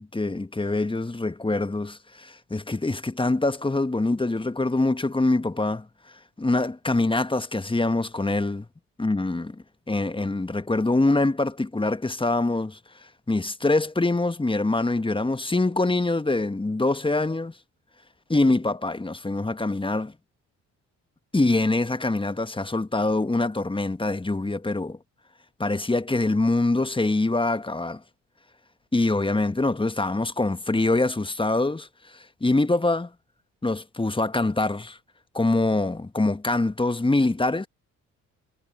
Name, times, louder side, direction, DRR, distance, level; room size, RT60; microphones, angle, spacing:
voice 1, 0.1-5.9 6.4-8.7 9.0-12.8 13.3-17.5 18.3-20.1 21.3-25.0 25.6-28.0 28.9-33.1 33.6-35.0 35.3-37.7, left 2 dB, 15° left, 1.4 m, -24 dB
hypercardioid pair, 45°, 38 cm